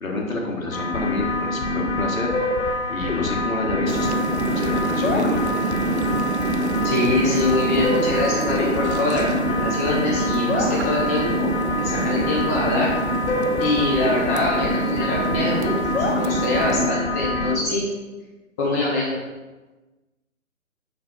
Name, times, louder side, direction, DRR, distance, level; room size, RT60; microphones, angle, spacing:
voice 1, 0.0-2.3 2.9-4.2 4.5-5.6, left 2 dB, 75° left, 0 dB, 1.7 m, -28 dB
sound 1, 0.7-17.6, left 2 dB, 55° left, 1.1 m, -25 dB
sound 2, 3.9-16.9, right 5 dB, 55° right, 0.5 m, -28 dB
voice 2, 6.8-11.5 11.7-12.9 13.6-17.9 18.6-19.1, left 2 dB, 10° left, -5 dB, 0.6 m, -24 dB
6.5 x 5.7 x 4.0 m, 1.2 s
figure-of-eight pair, 135°, 41 cm